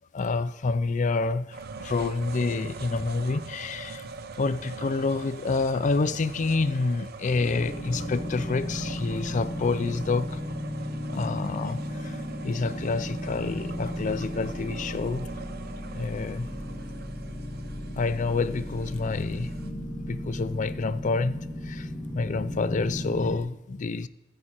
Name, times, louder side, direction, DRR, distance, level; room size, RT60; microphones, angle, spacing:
voice 1, 0.1-4.1 4.4-10.4 11.1-15.3 15.9-16.5 18.0-24.1, left 3 dB, 40° left, 0.4 m, -28 dB
sound 1, 1.5-19.7, right 4 dB, 55° right, 0.7 m, -42 dB
sound 2, 7.3-23.4, left 1 dB, 20° left, 1.4 m, -35 dB
14.0 x 14.0 x 3.0 m
head